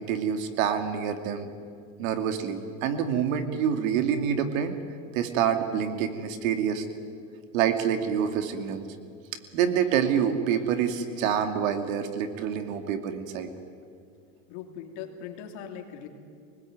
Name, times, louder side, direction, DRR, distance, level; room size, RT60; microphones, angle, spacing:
voice 1, 0.0-1.5 2.0-4.8 5.1-6.8 7.5-8.8 9.5-13.5, right 8 dB, 80° right, 7 dB, 2.6 m, -27 dB
voice 2, 14.5-16.1, left 8 dB, 60° left, 4 dB, 3.1 m, -40 dB
25.0 x 20.0 x 9.5 m, 2.3 s
supercardioid pair, 165°, 40 cm